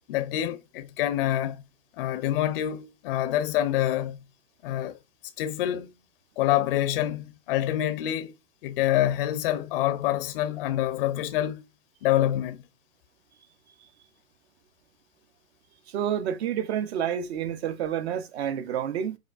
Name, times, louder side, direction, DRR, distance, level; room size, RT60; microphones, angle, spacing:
voice 1, 0.1-1.6 2.0-4.2 4.6-5.0 5.4-5.9 6.4-8.3 8.6-11.6 12.0-12.6, left 12 dB, 45° left, 0.5 m, -26 dB
voice 2, 15.9-19.2, right 9 dB, 50° right, 0.7 m, -29 dB
4.7 x 2.3 x 2.4 m
hypercardioid pair, 120°, 42 cm